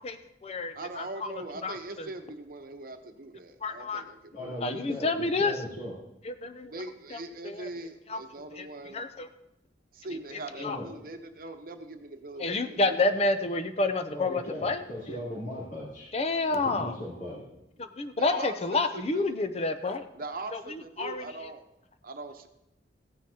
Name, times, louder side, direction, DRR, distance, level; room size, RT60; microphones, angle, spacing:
voice 1, 0.0-1.3 1.6-2.1 3.6-4.0 4.6-5.6 6.2-6.7 7.1-7.2 7.4-7.7 8.1-8.2 8.5-9.3 10.6-10.8 12.4-14.8 15.1-15.2 16.1-17.0 17.8-20.1 20.5-21.2, left 3 dB, 35° left, 9 dB, 0.6 m, -29 dB
voice 2, 0.7-4.9 6.7-9.0 9.9-13.1 17.8-17.9 18.1-19.3 20.1-21.6 22.0-22.5, right 2 dB, 50° right, 7 dB, 0.9 m, -41 dB
voice 3, 4.3-5.9 10.6-10.9 14.1-16.1 16.5-17.4, left 1 dB, 70° left, -8 dB, 3.5 m, -38 dB
16.0 x 9.7 x 2.8 m, 0.85 s
head